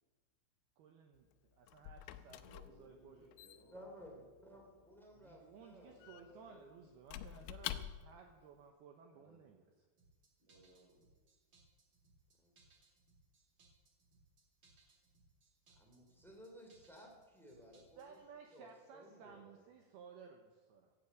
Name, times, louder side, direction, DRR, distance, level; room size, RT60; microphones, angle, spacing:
voice 1, 0.8-2.5 2.8-3.2 5.2-9.9 18.0-20.9, right 6 dB, 85° right, 4 dB, 2.2 m, -58 dB
Squeak / Wood, 1.2-8.3, left 13 dB, 80° left, 3.0 m, -49 dB
voice 2, 2.4-3.9 10.4-11.0, right 1 dB, 65° right, -2 dB, 7.9 m, -63 dB
voice 3, 3.7-6.7 7.6-7.7 9.3-9.4 12.4-12.5 15.7-18.2 18.5-19.6, equal, ahead, 0 dB, 1.0 m, -57 dB
sound 1, 10.0-18.2, right 3 dB, 45° right, 1.7 m, -70 dB
16.0 x 8.7 x 8.2 m, 1.3 s
omnidirectional pair, 5.9 m